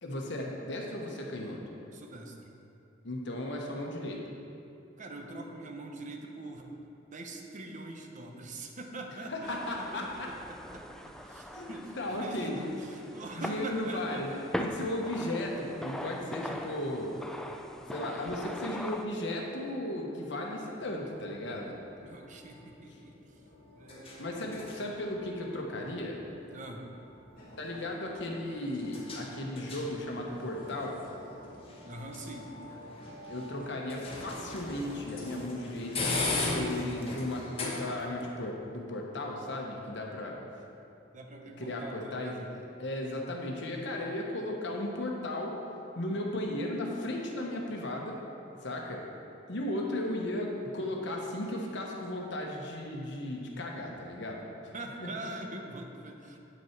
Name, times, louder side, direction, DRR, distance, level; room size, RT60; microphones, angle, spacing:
voice 1, 0.0-1.6 3.0-4.2 9.3-10.3 11.5-12.8 13.4-17.2 17.9-21.7 24.2-26.2 27.6-31.0 33.3-36.2 36.5-40.4 41.6-42.5 42.8-45.6 45.9-48.2 48.6-49.0 49.5-54.7, left 1 dB, 65° left, 0 dB, 1.1 m, -35 dB
voice 2, 1.9-2.5 5.0-6.7 7.1-10.8 11.2-14.3 22.0-23.1 23.7-24.6 26.5-26.9 31.8-32.5 41.1-42.5 54.7-56.4, right 2 dB, 40° right, 2 dB, 0.8 m, -43 dB
sound 1, 9.4-19.0, equal, 5° left, 0.3 m, -41 dB
sound 2, 20.8-38.2, left 2 dB, 30° left, 1.1 m, -40 dB
sound 3, 27.4-35.8, right 1 dB, 50° left, 1.7 m, -52 dB
8.5 x 6.1 x 4.5 m, 2.8 s
head